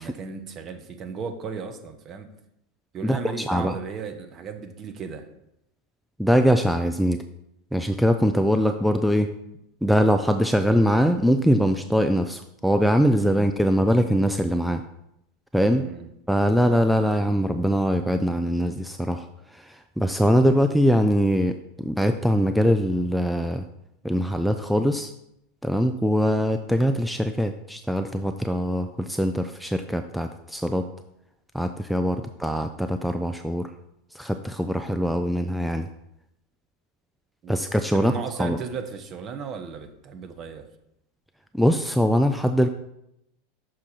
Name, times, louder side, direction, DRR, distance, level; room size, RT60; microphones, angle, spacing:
voice 1, 0.0-2.3 2.9-5.3 13.2-13.5 15.7-16.1 32.2-32.3 37.4-37.6 37.9-40.7, right 5 dB, 35° right, 7 dB, 0.9 m, -35 dB
voice 2, 3.0-3.8 6.2-7.2 7.7-9.3 9.8-14.8 15.5-15.9 16.3-23.6 24.0-25.1 25.6-30.9 31.5-33.7 34.1-35.9 37.5-38.1 38.4-38.6 41.5-42.7, equal, ahead, 7 dB, 0.3 m, -22 dB
6.2 x 4.7 x 4.3 m, 0.82 s
hypercardioid pair, 85°, 0 cm